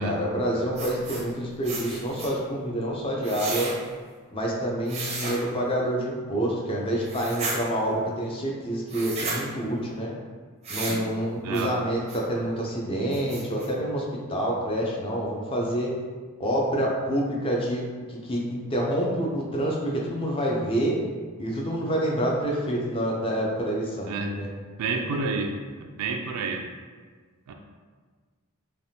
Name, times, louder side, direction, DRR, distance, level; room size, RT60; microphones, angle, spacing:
voice 1, 0.0-3.7 4.3-10.1 10.7-15.9 16.4-21.0 21.4-24.5, right 1 dB, 25° left, -2 dB, 0.5 m, -27 dB
sound 1, 0.8-1.3 1.6-2.3 3.2-3.7 4.9-5.4 7.0-7.6 8.9-9.4 10.6-11.0 11.5-11.7 12.1-12.2 12.7-12.8 13.1-13.7, right 3 dB, 30° right, 0.5 m, -33 dB
voice 2, 11.4-11.8 24.1-24.4 24.8-25.5 25.8-26.7 27.5-27.6, right 3 dB, 90° right, 3 dB, 0.3 m, -29 dB
3.3 x 2.3 x 2.7 m, 1.5 s
head